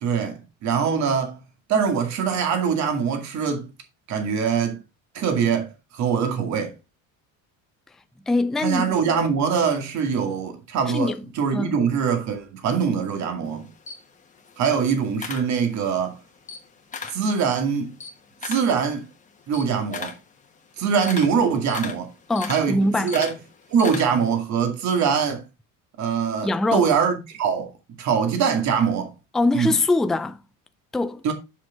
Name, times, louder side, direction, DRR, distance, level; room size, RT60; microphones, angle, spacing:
voice 1, 0.0-1.4 1.7-3.7 4.1-4.8 5.1-6.7 8.6-13.7 14.6-16.2 17.1-17.9 18.4-19.0 19.5-20.1 20.8-22.1 22.5-23.3 23.7-25.4 26.0-27.7 28.0-29.1 29.5-29.7 31.2-31.3, right 6 dB, 50° right, 2.2 m, -23 dB
voice 2, 8.3-9.0 10.9-11.2 11.5-11.8 22.3-23.1 26.4-26.9 29.3-30.4 30.9-31.3, left 2 dB, ahead, 0.3 m, -23 dB
Camera, 13.5-16.0 16.4-17.3 17.7-24.4, left 5 dB, 20° left, 1.4 m, -37 dB
7.2 x 6.1 x 3.8 m
cardioid pair, 125°, 36 cm